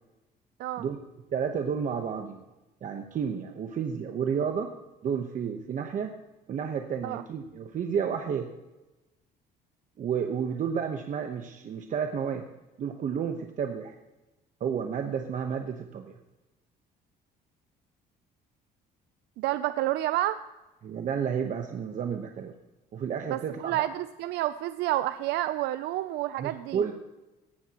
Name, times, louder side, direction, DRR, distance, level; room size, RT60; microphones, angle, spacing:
voice 1, 1.3-2.4 2.8-4.7 5.0-6.1 6.5-8.5 10.0-12.4 12.8-13.9 14.6-16.2 20.8-22.5 22.9-23.9 26.4-26.9, right 7 dB, 50° right, 5 dB, 1.0 m, -31 dB
voice 2, 19.4-20.4 23.3-26.8, right 15 dB, 85° right, 13 dB, 0.5 m, -29 dB
17.0 x 12.0 x 3.0 m, 1.0 s
cardioid pair, 110°, 17 cm